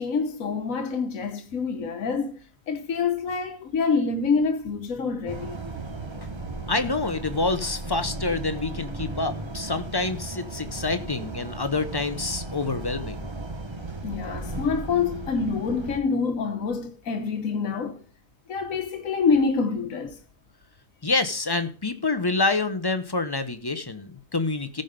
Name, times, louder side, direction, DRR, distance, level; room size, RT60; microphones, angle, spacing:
voice 1, 0.0-2.3 2.7-5.6 14.0-18.0 18.5-20.2, left 5 dB, 80° left, 1.6 m, -26 dB
sound 1, 5.3-16.0, right 2 dB, 25° right, 0.9 m, -36 dB
voice 2, 6.7-13.3 21.0-24.8, left 3 dB, 20° left, 0.8 m, -27 dB
15.5 x 5.4 x 5.2 m
omnidirectional pair, 1.4 m